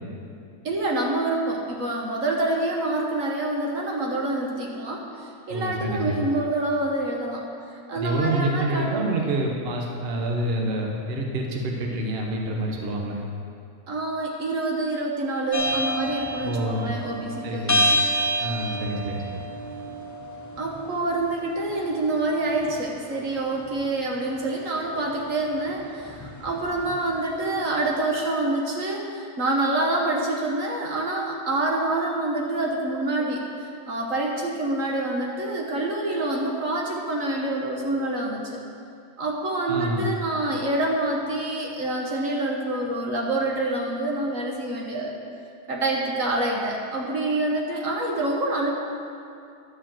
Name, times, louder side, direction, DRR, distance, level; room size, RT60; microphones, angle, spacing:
voice 1, 0.6-8.9 13.9-17.7 20.6-38.6 39.2-45.1 45.7-48.7, right 2 dB, 60° right, -1 dB, 1.3 m, -27 dB
voice 2, 5.5-6.2 7.9-13.2 16.4-16.9 17.4-17.9 18.4-19.2 39.7-40.1, right 1 dB, 45° right, 0 dB, 1.1 m, -27 dB
sound 1, 15.5-27.6, equal, 20° left, 0.4 m, -30 dB
11.0 x 4.9 x 7.5 m, 2.5 s
omnidirectional pair, 1.6 m